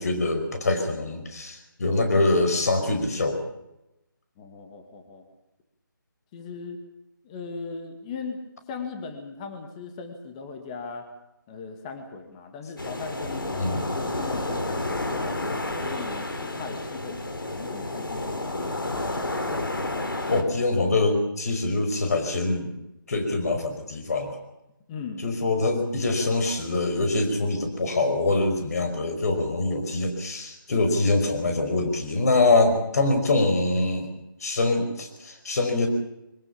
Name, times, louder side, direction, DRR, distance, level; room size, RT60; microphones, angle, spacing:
voice 1, 0.0-3.4 13.5-13.8 20.3-22.7 23.1-24.4 25.2-34.1 34.4-35.9, left 2 dB, 45° left, 6 dB, 5.4 m, -24 dB
voice 2, 4.4-5.2 6.3-6.8 7.2-8.4 8.7-11.1 11.5-15.4 15.8-19.0 24.9-25.2, left 4 dB, 20° left, 5 dB, 2.2 m, -38 dB
sound 1, 12.8-20.4, left 2 dB, 75° left, 4.2 m, -30 dB
23.5 x 19.5 x 7.1 m, 0.88 s
figure-of-eight pair, 160°, 11 cm